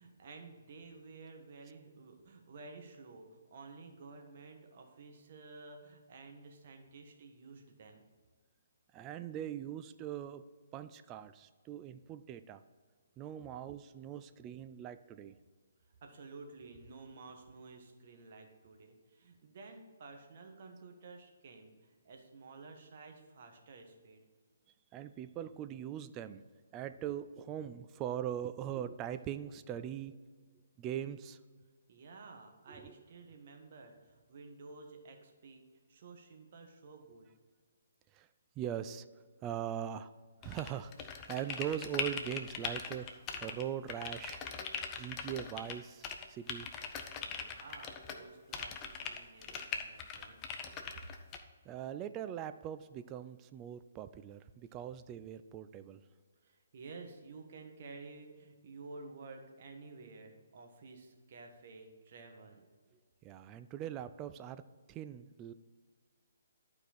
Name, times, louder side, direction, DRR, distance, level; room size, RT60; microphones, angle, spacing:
voice 1, 0.0-8.0 14.1-14.2 16.0-24.2 31.9-37.3 47.3-50.4 50.9-51.1 56.4-62.6, right 3 dB, 45° right, 3 dB, 1.4 m, -52 dB
voice 2, 8.9-10.4 10.7-12.6 13.2-15.4 24.9-26.4 26.7-30.2 30.8-31.4 32.7-32.9 38.1-38.3 38.6-39.1 39.4-40.1 40.4-44.4 45.0-46.7 51.6-56.0 63.2-64.6 64.9-65.5, right 10 dB, 20° right, 11 dB, 0.3 m, -41 dB
sound 1, 40.4-43.6 43.9-45.7 46.0-48.2 48.5-51.4, left 6 dB, 20° left, 0.7 m, -41 dB
11.5 x 4.8 x 4.3 m, 1.5 s
figure-of-eight pair, 135°, 0 cm